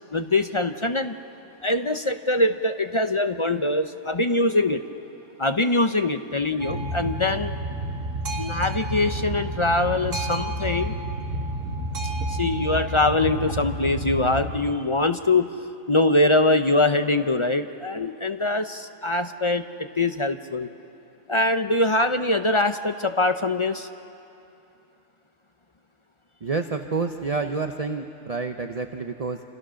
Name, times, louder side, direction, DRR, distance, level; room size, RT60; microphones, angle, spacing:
voice 1, 0.1-1.1 1.6-4.8 5.4-7.5 8.3-11.0 12.3-15.5 15.9-20.7 21.3-23.9, left 2 dB, 35° left, 8 dB, 0.5 m, -23 dB
Boat Water vehicle, 6.6-14.6, right 1 dB, 85° right, 2.5 m, -30 dB
voice 2, 26.4-29.4, right 4 dB, 35° right, 6 dB, 0.8 m, -28 dB
28.5 x 27.0 x 6.4 m, 2.8 s
omnidirectional pair, 1.3 m